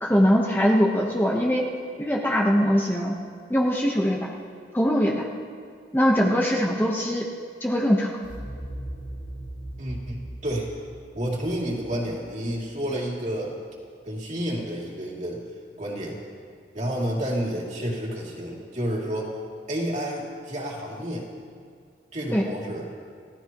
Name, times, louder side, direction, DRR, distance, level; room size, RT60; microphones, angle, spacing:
voice 1, 0.0-1.6 2.0-3.1 3.5-4.3 4.7-5.3 5.9-7.2 7.6-8.2 22.3-22.4, equal, 10° left, -2 dB, 1.1 m, -22 dB
sound 1, 8.2-13.1, right 1 dB, 45° left, 4.5 m, -39 dB
voice 2, 9.8-10.7 11.1-13.6 14.1-15.4 15.8-16.2 16.7-19.4 19.7-21.3 22.1-22.9, equal, 40° right, -3 dB, 2.9 m, -30 dB
28.5 x 16.0 x 3.1 m, 2.2 s
head